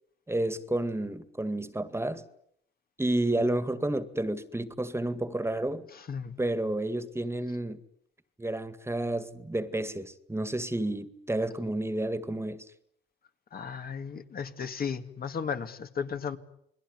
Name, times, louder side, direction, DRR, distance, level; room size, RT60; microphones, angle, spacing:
voice 1, 0.3-2.2 3.0-5.9 6.4-7.8 8.4-12.6, right 1 dB, 10° right, 2.1 m, -30 dB
voice 2, 6.1-6.4 13.5-16.4, left 6 dB, 50° left, 2.3 m, -35 dB
29.0 x 21.0 x 9.7 m
cardioid pair, 90°, 20 cm